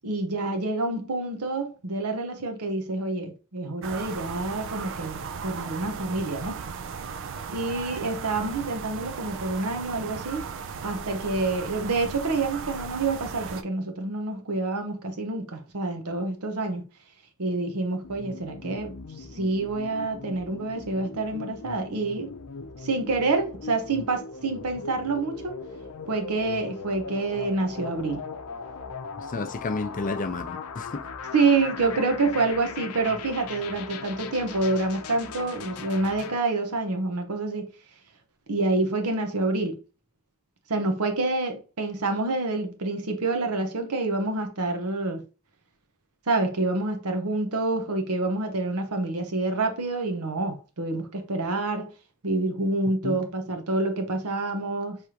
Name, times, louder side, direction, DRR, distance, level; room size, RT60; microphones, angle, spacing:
voice 1, 0.0-6.6 7.5-10.5 10.8-16.9 17.4-18.9 19.2-22.3 22.8-25.6 26.1-28.2 31.3-37.7 38.5-39.8 40.7-45.2 46.3-51.9 52.2-55.0, right 3 dB, 90° right, 1.0 m, -27 dB
sound 1, 3.8-13.6, right 6 dB, 60° right, 0.4 m, -36 dB
sound 2, 18.0-36.3, left 5 dB, 90° left, 0.6 m, -39 dB
voice 2, 29.2-31.0 53.0-53.2, left 3 dB, 35° left, 0.5 m, -31 dB
4.9 x 3.4 x 2.9 m
head